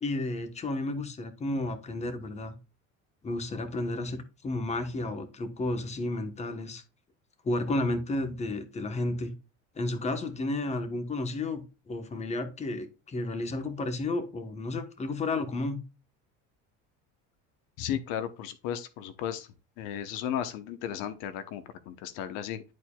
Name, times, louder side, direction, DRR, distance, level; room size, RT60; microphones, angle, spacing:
voice 1, 0.0-2.5 3.2-6.8 7.4-9.3 9.7-15.8, left 2 dB, 20° left, 1.1 m, -32 dB
voice 2, 17.8-19.5 19.8-22.6, left 10 dB, 80° left, 1.0 m, -35 dB
10.5 x 4.6 x 2.3 m
cardioid pair, 130°, 31 cm